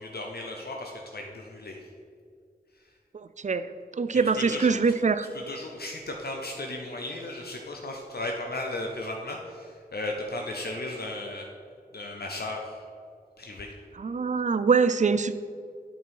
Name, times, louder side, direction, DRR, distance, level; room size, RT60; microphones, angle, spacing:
voice 1, 0.0-1.9 4.3-4.8 5.3-11.5 11.9-12.8 13.4-13.7, left 2 dB, 70° left, 1 dB, 0.7 m, -35 dB
voice 2, 4.0-5.3 14.0-15.3, right 5 dB, 45° right, 12 dB, 0.4 m, -23 dB
8.3 x 5.4 x 4.7 m, 2.3 s
wide cardioid pair, 45°, 17 cm